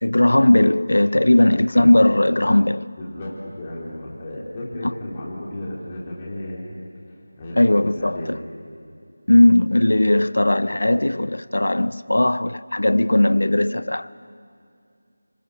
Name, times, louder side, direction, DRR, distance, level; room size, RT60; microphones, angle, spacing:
voice 1, 0.0-2.9 7.6-8.4 9.3-14.1, left 1 dB, 90° left, 0.6 m, -17 dB
voice 2, 3.0-6.7 7.1-8.4, left 1 dB, 20° left, 3.6 m, -34 dB
26.0 x 23.5 x 6.8 m
figure-of-eight pair, 175°, 0 cm